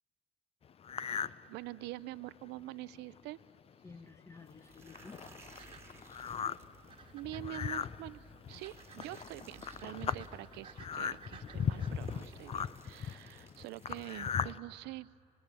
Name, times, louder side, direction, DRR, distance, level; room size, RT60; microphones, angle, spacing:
sound 1, 0.8-1.4 1.9-2.0 2.6-2.7 2.9-3.2 3.9-4.0 4.4-14.6, left 7 dB, 35° left, 0.5 m, -38 dB
voice 1, 1.1-3.4 6.4-6.6 7.1-15.1, right 18 dB, 85° right, 20 dB, 0.5 m, -46 dB
voice 2, 3.8-5.9, left 4 dB, 15° left, 13 dB, 1.0 m, -54 dB
sound 2, 4.4-12.8, right 5 dB, 30° right, 1.9 m, -56 dB
sound 3, 4.5-7.0 8.5-10.3 11.3-11.4 11.9-14.3, right 3 dB, 15° right, 2.7 m, -60 dB
27.0 x 20.5 x 7.5 m, 2.6 s
cardioid pair, 110°, 17 cm